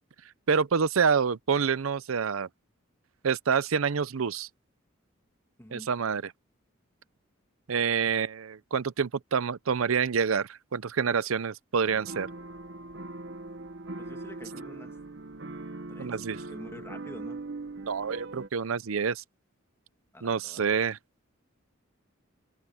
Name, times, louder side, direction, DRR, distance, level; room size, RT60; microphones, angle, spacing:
voice 1, 0.5-2.5 3.2-4.5 5.7-6.3 7.7-12.3 16.0-16.4 17.8-19.2 20.2-21.0, right 6 dB, 85° right, 0.6 m, -27 dB
voice 2, 5.6-5.9 14.0-14.9 15.9-17.4 20.1-20.7, left 1 dB, 10° left, 1.7 m, -48 dB
sound 1, 11.8-18.5, right 2 dB, 60° right, 1.2 m, -41 dB
head